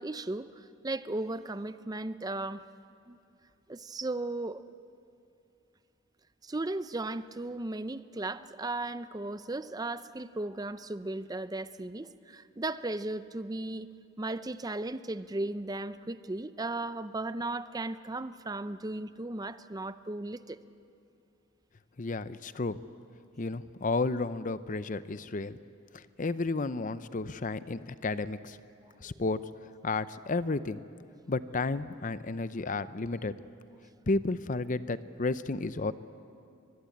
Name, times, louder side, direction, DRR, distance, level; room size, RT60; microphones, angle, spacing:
voice 1, 0.0-2.7 3.1-3.2 3.7-4.6 6.4-13.9 14.2-20.6, right 2 dB, 20° right, 0.6 m, -36 dB
voice 2, 22.0-22.8 23.4-25.6 25.9-28.6 29.0-29.4 29.8-30.8 31.3-33.3 34.1-35.9, left 3 dB, 45° left, 0.7 m, -32 dB
23.5 x 21.0 x 8.6 m
head